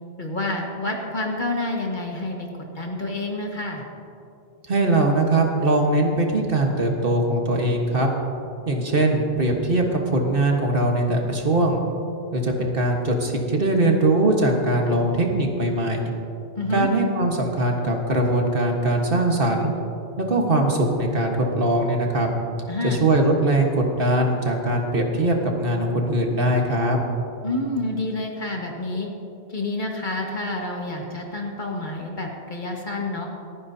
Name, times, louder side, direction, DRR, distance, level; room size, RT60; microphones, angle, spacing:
voice 1, 0.2-2.5 2.8-3.8 16.6-16.9 22.7-23.0 27.4-29.1 29.5-33.3, left 2 dB, 50° left, 0 dB, 1.8 m, -28 dB
voice 2, 4.7-8.1 8.7-11.8 12.3-16.0 16.7-19.7 20.2-22.3 22.8-27.0, right 1 dB, 60° right, 1 dB, 1.6 m, -21 dB
27.0 x 9.5 x 2.8 m, 2.6 s
omnidirectional pair, 1.0 m